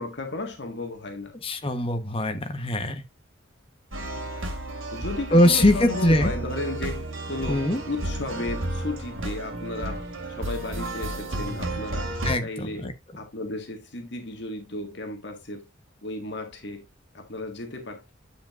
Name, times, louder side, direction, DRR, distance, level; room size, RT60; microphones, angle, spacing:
voice 1, 0.0-1.3 4.2-4.3 4.9-10.0 10.3-12.1 12.4-15.7 16.0-16.8 17.1-18.1, left 2 dB, 55° left, 1.7 m, -34 dB
voice 2, 1.4-3.0 5.3-6.3 7.5-7.8 12.2-12.9, left 1 dB, 25° left, 1.1 m, -22 dB
sound 1, 3.9-12.3, right 1 dB, 80° right, 2.3 m, -32 dB
10.0 x 7.6 x 2.5 m
head